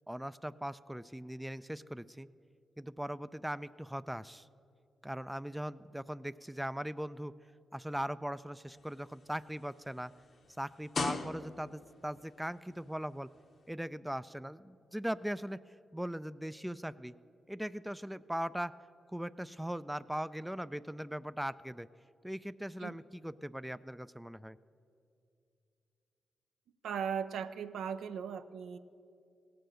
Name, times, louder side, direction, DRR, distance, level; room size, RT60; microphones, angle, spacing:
voice 1, 0.1-2.3 2.8-4.5 5.0-7.3 7.7-10.1 10.6-13.3 13.7-15.6 15.9-17.1 17.5-18.7 19.1-21.9 22.2-24.6, equal, 5° right, 15 dB, 0.3 m, -39 dB
sound 1, 8.8-11.9 12.8-12.9, left 4 dB, 60° left, 0.9 m, -40 dB
voice 2, 26.8-28.8, right 7 dB, 80° right, 10 dB, 0.5 m, -37 dB
17.0 x 6.8 x 6.4 m, 2.5 s
supercardioid pair, 55°, 0 cm